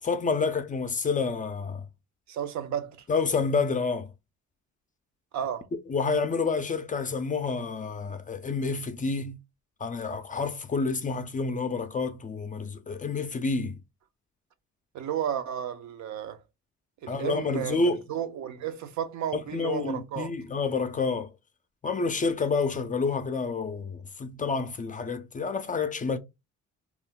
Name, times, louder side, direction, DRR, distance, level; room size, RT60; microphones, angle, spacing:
voice 1, 0.0-1.9 3.1-4.1 5.7-9.4 9.8-13.8 17.1-18.0 19.3-21.3 21.8-26.2, left 4 dB, 25° left, 0.4 m, -29 dB
voice 2, 2.3-3.0 5.3-5.7 14.9-16.4 17.0-17.8 18.1-20.3, right 9 dB, 65° right, 0.6 m, -32 dB
2.3 x 2.1 x 3.6 m
cardioid pair, 90°, 30 cm